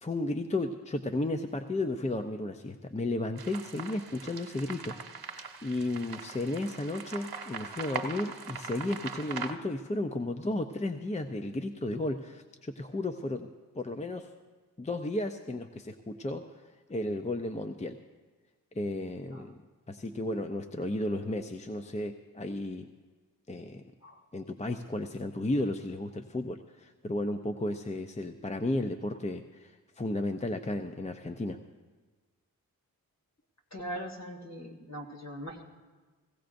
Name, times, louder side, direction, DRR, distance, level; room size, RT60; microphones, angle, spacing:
voice 1, 0.0-13.5 13.7-14.3 14.8-16.4 16.9-18.0 18.7-19.6 19.9-22.9 23.5-23.8 24.3-31.6, left 2 dB, 20° left, 6 dB, 0.5 m, -33 dB
sound 1, 3.4-9.5, right 5 dB, 85° right, 1.0 m, -41 dB
voice 2, 33.7-35.6, equal, 45° left, 2 dB, 2.2 m, -41 dB
17.0 x 16.5 x 2.6 m, 1.3 s
cardioid pair, 60°, 36 cm